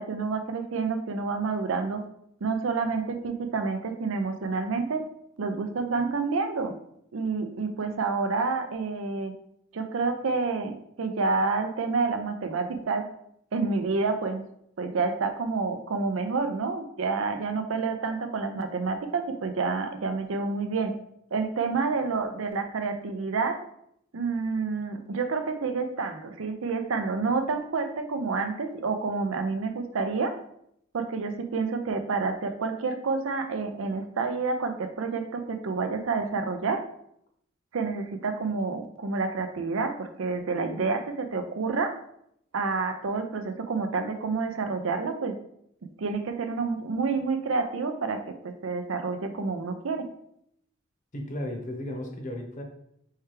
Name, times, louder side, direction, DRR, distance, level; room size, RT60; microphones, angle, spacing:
voice 1, 0.0-2.0 2.4-5.0 5.4-6.7 7.1-9.3 9.7-13.0 13.5-14.4 14.8-20.9 21.3-23.6 24.1-30.4 30.9-36.8 37.7-42.0 42.5-45.3 46.0-50.1, right 4 dB, 80° right, 7 dB, 0.5 m, -29 dB
voice 2, 51.1-52.6, left 1 dB, 40° left, 3 dB, 0.8 m, -34 dB
4.5 x 3.3 x 3.2 m, 0.73 s
head